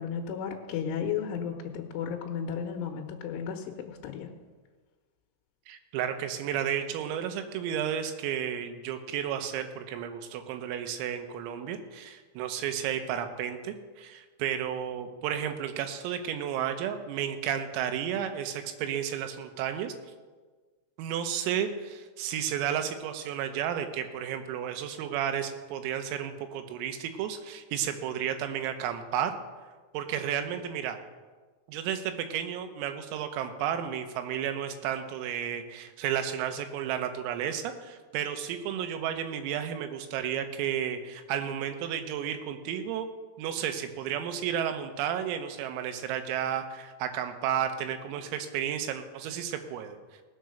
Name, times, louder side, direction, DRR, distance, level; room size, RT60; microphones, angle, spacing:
voice 1, 0.0-4.3, left 7 dB, 75° left, 2 dB, 3.2 m, -34 dB
voice 2, 5.7-19.9 21.0-29.3 29.9-31.0 31.7-43.1 43.4-50.0, right 9 dB, 85° right, 7 dB, 3.8 m, -32 dB
19.0 x 6.9 x 6.5 m, 1.4 s
omnidirectional pair, 5.9 m